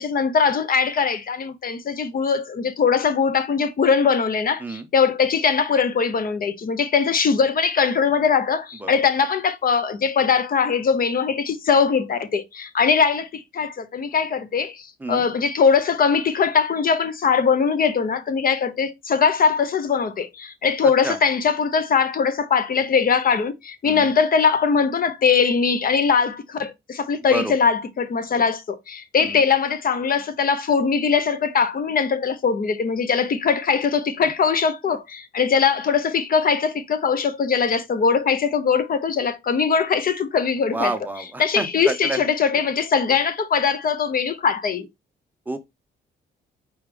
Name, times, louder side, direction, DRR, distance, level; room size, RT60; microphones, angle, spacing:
voice 1, 0.0-40.9 41.4-44.9, left 6 dB, 45° left, 0.9 m, -21 dB
voice 2, 20.8-21.2 23.8-24.1 27.3-27.5 29.2-29.4 34.2-34.3 40.7-42.3 45.5-45.6, right 2 dB, 10° right, 0.8 m, -29 dB
4.7 x 3.3 x 3.4 m
cardioid pair, 90°, 20 cm